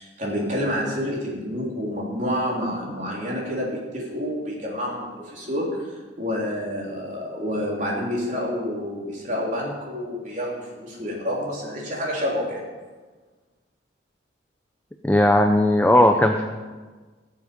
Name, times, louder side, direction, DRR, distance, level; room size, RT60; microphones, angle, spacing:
voice 1, 0.0-12.6, equal, 40° right, -3 dB, 3.5 m, -28 dB
voice 2, 15.0-16.4, left 1 dB, 10° left, 4 dB, 0.5 m, -17 dB
18.5 x 7.3 x 5.3 m, 1.4 s
head